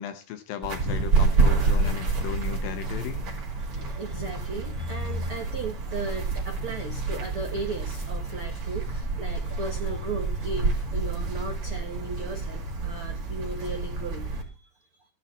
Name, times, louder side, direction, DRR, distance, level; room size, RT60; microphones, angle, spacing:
voice 1, 0.0-3.3 9.5-9.6, left 9 dB, 75° left, 9 dB, 2.3 m, -36 dB
sound 1, 0.6-14.4, right 3 dB, 40° right, 3.0 m, -28 dB
voice 2, 3.7-14.3, right 3 dB, 70° right, 2 dB, 1.3 m, -36 dB
15.5 x 10.0 x 4.2 m, 0.36 s
omnidirectional pair, 4.7 m